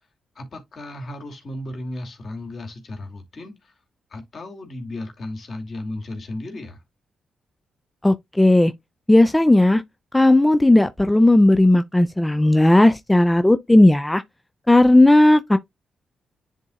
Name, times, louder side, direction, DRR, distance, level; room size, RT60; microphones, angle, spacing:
voice 1, 0.3-3.8 4.1-6.8, left 1 dB, 55° left, 2.5 m, -35 dB
voice 2, 8.0-8.7 9.1-9.8 10.1-14.2 14.7-15.6, left 1 dB, 15° left, 0.5 m, -15 dB
10.0 x 3.9 x 2.4 m
supercardioid pair, 45°, 0 cm